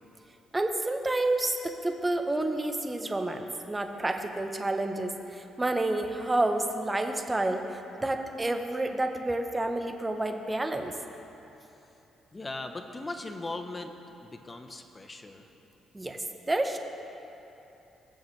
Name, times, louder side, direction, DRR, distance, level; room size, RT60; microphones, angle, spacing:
voice 1, 0.5-10.9 15.9-16.8, right 2 dB, 15° right, 5 dB, 0.9 m, -29 dB
voice 2, 12.3-13.9 14.2-15.4, left 2 dB, 25° left, 6 dB, 0.9 m, -38 dB
20.5 x 7.2 x 3.3 m, 3.0 s
cardioid pair, 90°, 0 cm